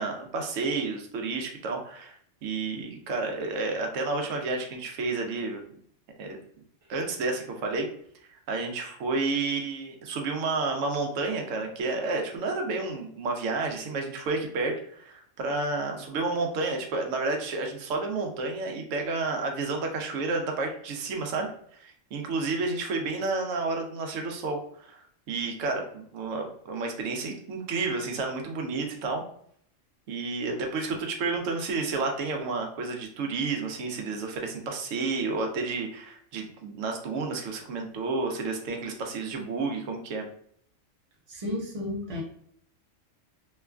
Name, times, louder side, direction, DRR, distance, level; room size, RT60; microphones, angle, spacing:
voice 1, 0.0-2.1 2.4-5.6 6.2-6.4 6.9-7.9 8.3-25.0 25.3-29.2 30.1-40.3, right 3 dB, 80° right, 3 dB, 1.0 m, -31 dB
voice 2, 41.3-42.2, left 1 dB, 35° right, -1 dB, 0.6 m, -33 dB
3.0 x 2.2 x 2.3 m, 0.63 s
omnidirectional pair, 1.3 m